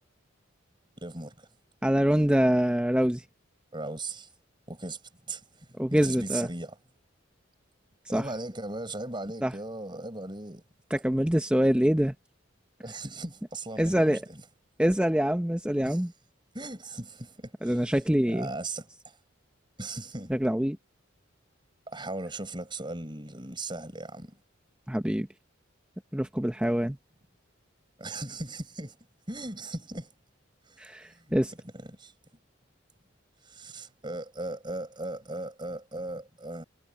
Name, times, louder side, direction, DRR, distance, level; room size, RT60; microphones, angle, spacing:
voice 1, 1.0-1.5 3.7-4.3 4.7-5.0 5.3-6.8 8.1-10.6 12.8-14.4 15.8-16.0 16.5-18.0 18.3-19.2 19.8-20.3 21.9-24.4 28.0-29.0 29.3-30.1 30.7-31.4 31.6-32.1 33.4-36.6, right 2 dB, 25° right, 7.3 m, -38 dB
voice 2, 1.8-3.2 5.8-6.5 8.1-8.3 9.4-9.5 10.9-12.1 13.8-14.3 14.8-16.1 17.6-18.5 20.3-20.8 24.9-25.3 26.1-27.0 30.8-31.5, equal, 5° right, 0.7 m, -25 dB
head